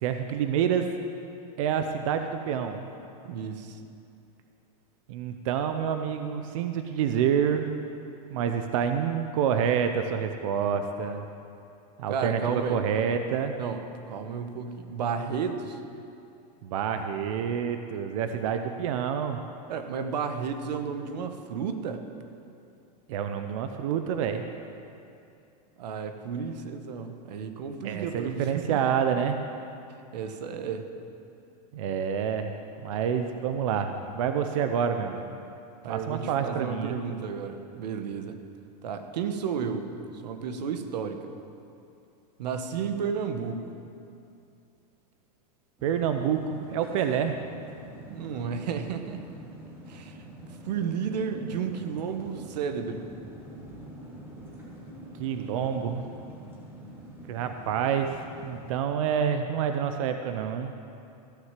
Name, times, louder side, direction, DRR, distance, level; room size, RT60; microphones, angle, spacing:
voice 1, 0.0-0.9 1.6-2.9 5.1-7.7 8.3-11.2 12.0-13.6 16.6-19.4 23.1-24.5 27.8-29.4 31.7-32.5 32.8-35.4 35.9-37.0 45.8-47.3 55.2-56.0 57.3-58.2 58.4-60.7, right 8 dB, 50° right, 7 dB, 0.6 m, -28 dB
voice 2, 3.2-3.8 12.1-12.8 13.6-15.8 19.7-22.0 25.8-28.8 30.1-30.9 35.8-38.4 38.8-39.9 40.2-41.3 42.4-43.7 48.1-49.2 49.9-50.2 50.6-53.1, right 6 dB, 85° right, 8 dB, 1.1 m, -32 dB
sound 1, 45.8-58.7, right 1 dB, 10° right, 1.5 m, -45 dB
15.0 x 6.4 x 7.4 m, 2.6 s
supercardioid pair, 170°, 21 cm